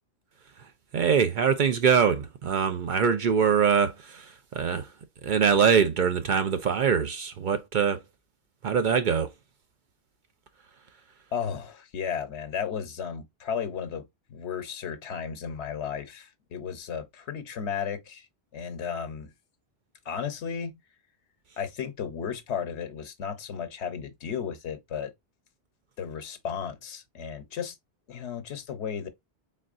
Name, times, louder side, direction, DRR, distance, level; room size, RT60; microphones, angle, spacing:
voice 1, 0.9-4.2 4.5-4.8 5.2-8.0 8.6-9.3, right 6 dB, 55° right, 0.7 m, -23 dB
voice 2, 11.3-18.3 18.5-19.3 20.0-20.8 21.6-25.1 26.0-27.7 28.1-29.1, left 7 dB, 80° left, 1.1 m, -34 dB
4.1 x 3.7 x 2.4 m
omnidirectional pair, 1.1 m